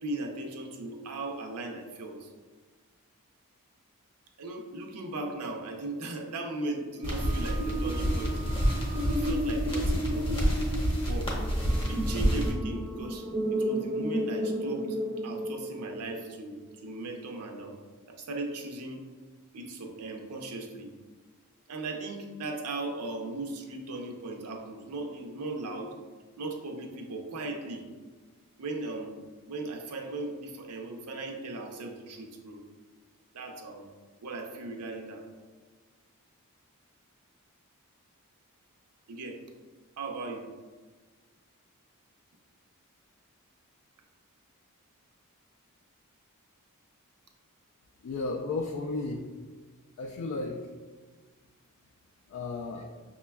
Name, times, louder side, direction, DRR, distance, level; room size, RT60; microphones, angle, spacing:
voice 1, 0.0-2.3 4.4-8.3 9.1-10.3 11.1-11.3 11.9-13.2 13.6-15.0 15.2-17.8 18.1-19.0 19.5-20.9 21.7-25.9 26.4-27.8 28.6-29.1 29.5-32.6 33.3-33.9 34.2-35.2 39.1-39.4 40.0-40.5, right 2 dB, 85° right, 3 dB, 0.6 m, -37 dB
sound 1, 6.9-16.2, right 1 dB, 35° right, 0.4 m, -33 dB
sound 2, 7.0-12.5, equal, 25° left, 0.7 m, -28 dB
voice 2, 48.0-49.2 50.0-50.7 52.3-52.9, left 3 dB, 60° left, 1 dB, 0.3 m, -33 dB
5.8 x 2.2 x 2.2 m, 1.4 s
head